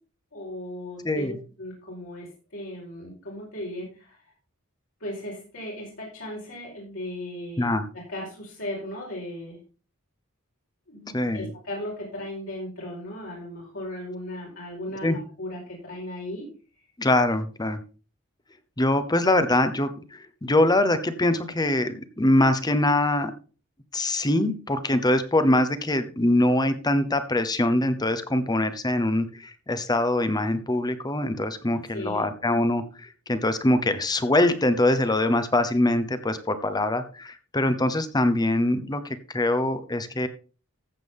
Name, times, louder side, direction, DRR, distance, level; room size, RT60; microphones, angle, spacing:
voice 1, 0.3-4.2 5.0-9.6 10.9-16.5 31.9-32.3, left 1 dB, 65° left, -5 dB, 4.6 m, -37 dB
voice 2, 11.1-11.5 15.0-15.2 17.0-17.8 18.8-23.3 23.9-40.3, left 1 dB, 20° left, 11 dB, 1.0 m, -23 dB
14.5 x 7.5 x 3.6 m, 0.36 s
head